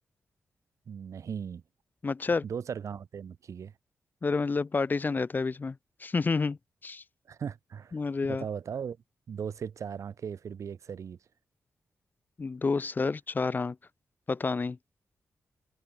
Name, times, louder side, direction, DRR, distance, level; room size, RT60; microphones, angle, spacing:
voice 1, 0.9-1.6 2.4-3.7 7.3-8.0 8.3-9.0 9.3-11.2, right 7 dB, 70° right, 3.9 m, -37 dB
voice 2, 2.0-2.4 4.2-6.6 6.8-7.0 7.9-8.4 12.4-13.8 14.3-14.8, left 4 dB, 35° left, 1.3 m, -29 dB
wide cardioid pair, 105°, 5 cm